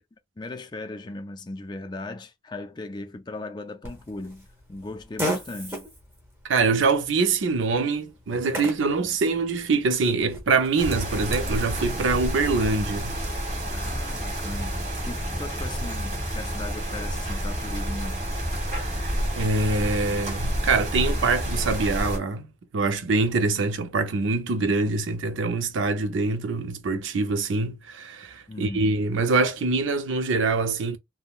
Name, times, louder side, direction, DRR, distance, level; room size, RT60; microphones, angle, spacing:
voice 1, 0.4-5.9 13.7-18.3 28.5-28.9, left 2 dB, 25° left, 0.4 m, -37 dB
Fart, 3.8-11.6, equal, 15° right, 1.0 m, -37 dB
voice 2, 6.4-13.2 18.8-22.5 22.7-31.0, right 3 dB, 80° right, 0.5 m, -24 dB
sound 1, 10.8-22.2, equal, 40° right, 1.4 m, -29 dB
3.6 x 2.1 x 2.4 m
head